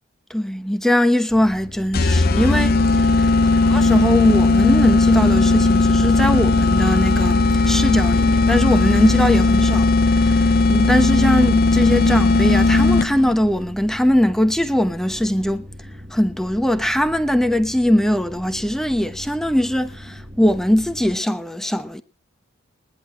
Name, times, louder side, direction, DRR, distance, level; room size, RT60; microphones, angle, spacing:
voice 1, 0.3-3.3 3.6-15.6 16.1-22.0, left 1 dB, ahead, 1.0 m, -21 dB
sound 1, 1.3-21.2, equal, 25° right, 1.3 m, -40 dB
sound 2, 1.9-13.4, left 3 dB, 50° left, 0.6 m, -16 dB
22.0 x 10.5 x 3.0 m
head